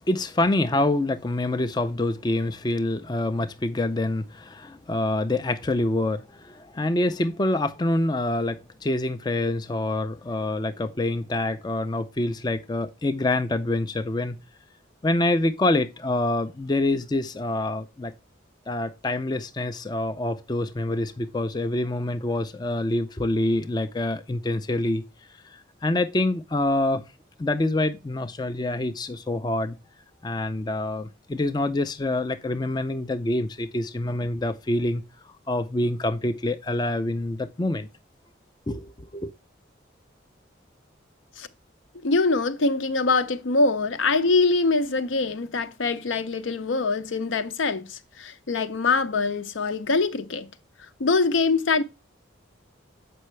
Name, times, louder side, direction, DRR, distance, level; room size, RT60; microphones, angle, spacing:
voice 1, 0.1-14.4 15.0-18.1 18.7-25.0 25.4-27.0 27.4-29.8 30.2-35.0 35.5-37.9 38.7-39.3, left 2 dB, 20° left, 0.4 m, -26 dB
voice 2, 42.0-50.5 51.0-51.8, left 3 dB, 75° left, 0.7 m, -23 dB
7.7 x 5.4 x 3.2 m
head